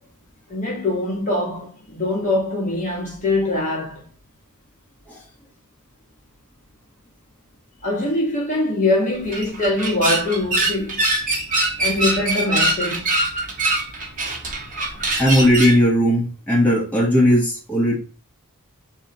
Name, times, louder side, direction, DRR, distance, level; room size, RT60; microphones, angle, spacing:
voice 1, 0.5-4.1 7.8-11.0 11.8-13.1, left 2 dB, 35° left, 1.3 m, -23 dB
sound 1, 9.1-15.8, right 2 dB, 35° right, 1.1 m, -23 dB
voice 2, 15.2-18.0, equal, 10° left, 1.5 m, -17 dB
3.5 x 3.3 x 4.2 m
head